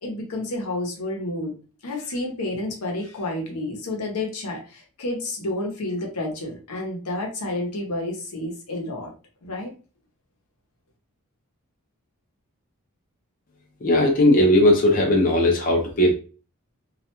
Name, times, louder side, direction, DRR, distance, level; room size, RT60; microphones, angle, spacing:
voice 1, 0.0-1.5 1.8-9.1 9.4-9.7, left 2 dB, 90° left, 1 dB, 0.8 m, -30 dB
voice 2, 13.8-16.1, left 1 dB, 40° left, 0 dB, 0.5 m, -18 dB
2.4 x 2.1 x 2.8 m, 0.36 s
head